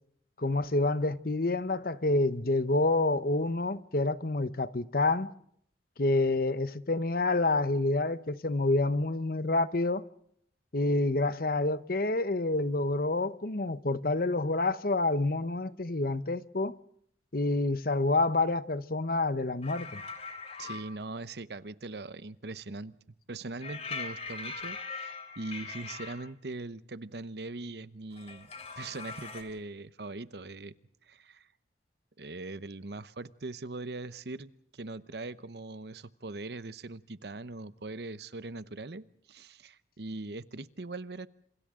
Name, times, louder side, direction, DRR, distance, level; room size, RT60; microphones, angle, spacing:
voice 1, 0.4-5.3 6.0-10.0 10.7-16.7 17.3-20.0, left 2 dB, 55° left, 1.0 m, -28 dB
sound 1, 19.6-20.8 23.6-26.1 28.1-29.4, left 4 dB, 35° left, 3.7 m, -41 dB
voice 2, 20.6-23.0 23.3-28.5 28.8-30.7 31.0-31.5 32.2-41.3, right 2 dB, 65° right, 0.9 m, -41 dB
29.0 x 27.0 x 3.8 m
head